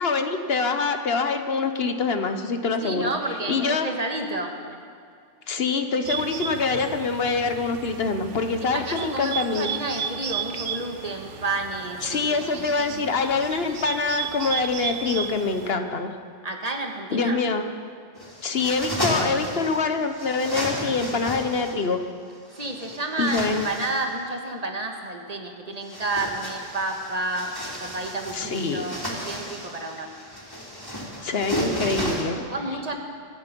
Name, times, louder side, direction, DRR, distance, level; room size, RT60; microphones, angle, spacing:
voice 1, 0.0-3.1 3.5-3.9 5.5-9.7 12.0-16.1 17.1-17.7 18.4-22.0 23.2-23.7 28.3-28.9 31.2-32.4, left 4 dB, 60° left, 8 dB, 1.2 m, -25 dB
voice 2, 2.8-4.6 8.6-13.1 16.4-17.4 22.5-30.1 32.4-33.0, right 2 dB, 35° right, 3 dB, 1.6 m, -31 dB
Bird, 6.0-15.7, right 8 dB, 80° right, 1.2 m, -34 dB
sound 1, 18.1-19.8 20.1-21.8 22.5-24.1 25.7-32.2, equal, 20° left, 3.6 m, -32 dB
25.5 x 9.6 x 5.3 m, 2.2 s
omnidirectional pair, 1.2 m